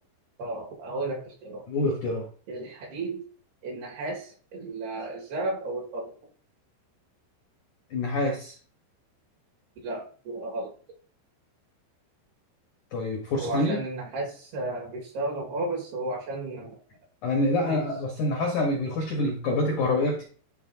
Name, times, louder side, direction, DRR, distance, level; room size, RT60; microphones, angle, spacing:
voice 1, 0.4-1.6 2.5-3.3 3.6-6.1 9.8-10.8 13.4-16.8 17.7-17.8, right 2 dB, 65° right, 3.7 m, -33 dB
voice 2, 1.7-2.3 7.9-8.5 12.9-13.8 17.2-20.2, left 2 dB, 70° left, 1.9 m, -26 dB
12.5 x 4.4 x 2.8 m
omnidirectional pair, 5.5 m